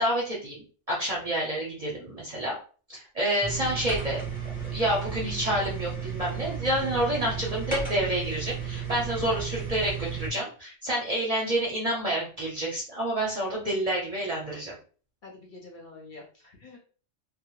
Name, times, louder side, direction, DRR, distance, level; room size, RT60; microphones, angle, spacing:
voice 1, 0.0-2.6 2.9-4.2 4.7-14.7, right 1 dB, 40° right, -4 dB, 0.6 m, -28 dB
sound 1, 3.4-10.3, right 6 dB, 10° left, 0.9 m, -34 dB
voice 2, 15.2-16.8, left 3 dB, 55° left, -1 dB, 0.7 m, -46 dB
2.1 x 2.0 x 3.0 m, 0.40 s
omnidirectional pair, 1.2 m